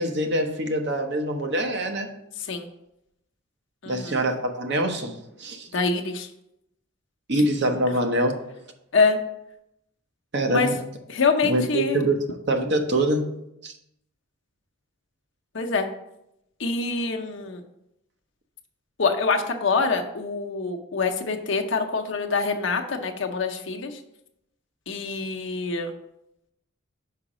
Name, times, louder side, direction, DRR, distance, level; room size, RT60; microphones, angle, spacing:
voice 1, 0.0-2.1 3.9-5.1 5.4-5.7 7.3-8.4 10.3-10.8 11.4-12.2 12.5-13.3 13.6-13.7, right 1 dB, 55° right, 4 dB, 0.8 m, -24 dB
voice 2, 2.4-2.7 3.8-4.2 5.7-6.3 8.9-9.2 10.5-10.7 11.1-12.0 15.5-15.9 16.6-17.6 19.0-24.0 24.9-25.9, left 4 dB, 65° left, 3 dB, 0.8 m, -25 dB
5.8 x 4.9 x 4.9 m, 0.82 s
head